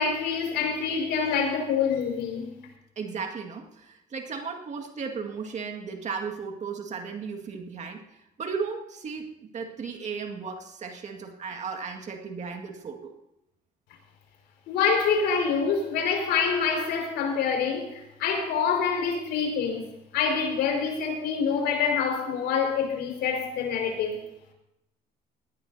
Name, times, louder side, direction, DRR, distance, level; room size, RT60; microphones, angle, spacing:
voice 1, 0.0-2.5 14.7-19.8 20.1-24.2, left 6 dB, 80° left, 5.1 m, -26 dB
voice 2, 3.0-8.0 8.4-9.3 9.5-13.2, right 5 dB, 45° right, 2.0 m, -35 dB
20.0 x 17.5 x 2.8 m
cardioid pair, 110°, 17 cm